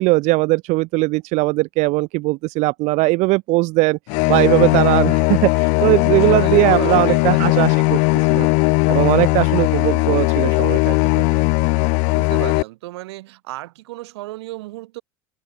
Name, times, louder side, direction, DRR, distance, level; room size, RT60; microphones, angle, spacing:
voice 1, 0.0-4.0 4.3-11.2, right 23 dB, 60° right, 2.6 m, -19 dB
sound 1, 4.1-12.6, left 33 dB, 65° left, 1.0 m, -18 dB
voice 2, 6.1-7.6 9.1-9.7 12.1-15.0, right 18 dB, 85° right, 6.6 m, -34 dB
supercardioid pair, 115°, 14 cm